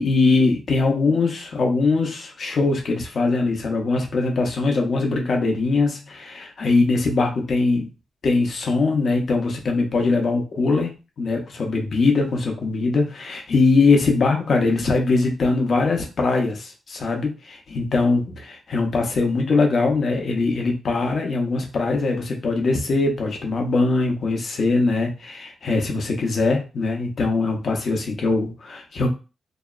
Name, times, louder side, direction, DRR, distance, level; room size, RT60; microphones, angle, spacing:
voice 1, 0.0-7.9 8.2-29.1, left 3 dB, 60° left, 2 dB, 0.7 m, -21 dB
2.7 x 2.0 x 2.3 m, 0.31 s
cardioid pair, 90°, 0 cm